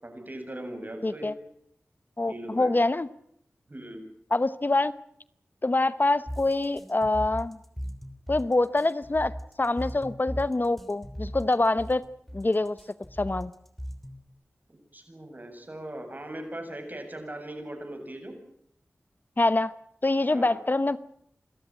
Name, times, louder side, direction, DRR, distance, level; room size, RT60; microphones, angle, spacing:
voice 1, 0.0-1.3 2.3-2.7 3.7-4.0 14.9-18.4 20.3-20.6, right 1 dB, 40° right, 5 dB, 7.6 m, -39 dB
voice 2, 1.0-1.3 2.2-3.1 4.3-4.9 5.6-7.6 8.3-12.0 12.3-12.8 13.2-13.5 19.4-19.7 20.0-21.0, left 2 dB, 40° left, 16 dB, 0.9 m, -25 dB
sound 1, 6.3-14.3, equal, 5° left, 3.1 m, -38 dB
28.0 x 13.5 x 9.1 m, 0.70 s
cardioid pair, 40°, 5 cm